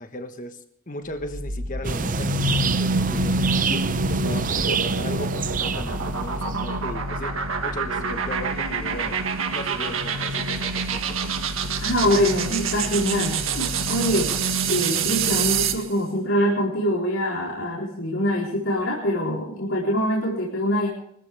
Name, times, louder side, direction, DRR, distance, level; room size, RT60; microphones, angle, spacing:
voice 1, 0.0-9.2 9.5-11.2, left 1 dB, 35° left, 7 dB, 1.4 m, -36 dB
sound 1, 1.2-15.9, right 4 dB, 70° right, 1.7 m, -27 dB
sound 2, 1.8-6.8, right 5 dB, 40° right, 0.6 m, -27 dB
voice 2, 11.8-14.3 14.6-20.9, equal, 65° left, -5 dB, 4.1 m, -24 dB
24.0 x 14.5 x 3.6 m, 0.71 s
head